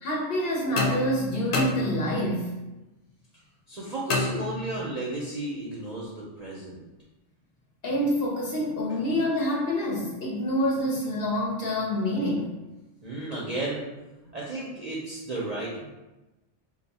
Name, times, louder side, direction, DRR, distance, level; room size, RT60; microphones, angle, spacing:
voice 1, 0.0-2.5 7.8-12.5, equal, 55° left, -3 dB, 0.8 m, -27 dB
sound 1, 0.8-2.4 4.1-5.1, left 3 dB, 90° left, 1.0 m, -29 dB
voice 2, 3.7-6.8 13.0-13.9 14.3-15.9, right 2 dB, 50° right, -6 dB, 0.5 m, -33 dB
2.6 x 2.3 x 3.9 m, 1.0 s
omnidirectional pair, 1.3 m